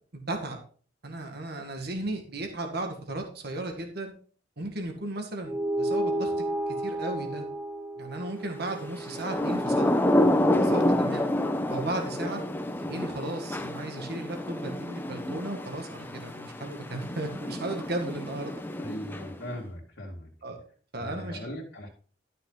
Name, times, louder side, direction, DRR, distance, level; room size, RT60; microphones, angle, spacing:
voice 1, 0.1-0.6 1.0-4.1 4.6-6.3 6.8-7.5 8.0-9.9 10.6-11.3 11.7-12.4 12.8-18.6 20.4-20.6 20.9-21.5, right 2 dB, 55° right, 4 dB, 1.9 m, -35 dB
sound 1, 5.4-10.3, right 1 dB, 5° right, 1.1 m, -32 dB
Thunder / Rain, 9.0-19.6, left 1 dB, 10° left, 0.8 m, -28 dB
voice 2, 18.8-20.3 20.9-21.9, equal, 65° left, -5 dB, 2.4 m, -39 dB
12.5 x 6.5 x 3.9 m, 0.42 s
head